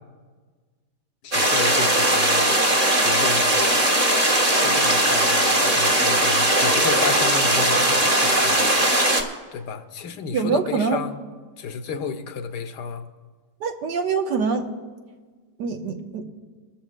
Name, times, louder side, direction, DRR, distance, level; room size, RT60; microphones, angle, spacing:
voice 1, 1.2-2.6 3.0-3.7 4.5-8.7 9.5-11.2 11.6-13.0, left 5 dB, 75° left, 6 dB, 1.4 m, -32 dB
sound 1, 1.3-9.2, right 1 dB, 25° right, 1.1 m, -19 dB
voice 2, 10.3-11.0 13.6-14.7 15.6-16.2, right 5 dB, 80° right, 5 dB, 1.6 m, -24 dB
23.5 x 13.5 x 2.2 m, 1.4 s
omnidirectional pair, 1.8 m